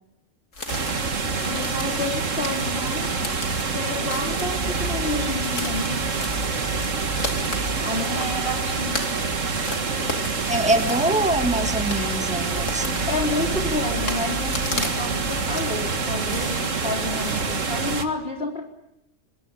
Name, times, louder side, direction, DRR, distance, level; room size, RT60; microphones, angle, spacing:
sound 1, 0.5-17.5, left 2 dB, 75° left, 3.3 m, -37 dB
sound 2, 0.7-18.1, right 4 dB, 75° right, 2.1 m, -26 dB
voice 1, 1.4-3.3 3.6-6.0 7.8-9.0 13.1-18.6, left 2 dB, 50° left, 0 dB, 4.6 m, -30 dB
sound 3, 4.4-18.0, right 1 dB, 60° right, 3.7 m, -37 dB
voice 2, 7.9-8.2 10.5-13.1, right 1 dB, 5° right, 6 dB, 2.0 m, -25 dB
26.0 x 21.5 x 9.0 m, 0.83 s
omnidirectional pair, 1.3 m